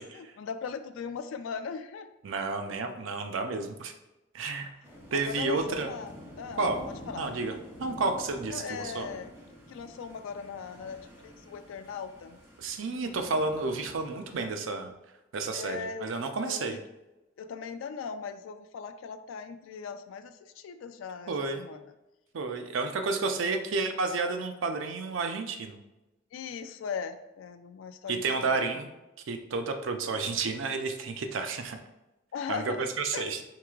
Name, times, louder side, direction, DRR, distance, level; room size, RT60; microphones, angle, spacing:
voice 1, 0.0-2.1 2.7-2.8 5.1-7.3 8.5-9.3 9.7-12.4 15.5-16.1 16.5-16.8 17.4-21.8 23.2-23.5 26.3-28.7 32.3-33.3, left 6 dB, 90° left, 9 dB, 0.3 m, -39 dB
voice 2, 2.2-3.9 4.3-4.7 5.1-5.9 6.6-6.8 7.2-7.5 7.8-9.1 12.6-14.9 15.3-16.8 21.3-21.6 22.3-25.8 28.1-28.9 29.3-31.8 32.5-33.4, right 3 dB, 80° right, 6 dB, 0.5 m, -31 dB
sound 1, 4.8-14.4, equal, 15° right, 1.2 m, -48 dB
4.7 x 3.7 x 2.3 m, 0.99 s
head